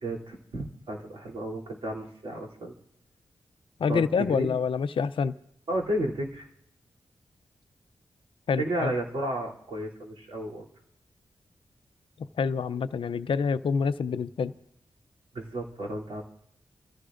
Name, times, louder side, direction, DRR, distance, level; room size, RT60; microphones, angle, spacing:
voice 1, 0.0-2.7 3.9-4.0 4.4-4.5 5.7-6.5 8.6-10.6 15.3-16.2, right 1 dB, 75° right, -3 dB, 3.0 m, -32 dB
voice 2, 3.8-5.3 8.5-8.9 12.4-14.5, left 5 dB, 70° left, 13 dB, 0.5 m, -27 dB
29.0 x 14.5 x 2.5 m, 0.77 s
wide cardioid pair, 100°, 9 cm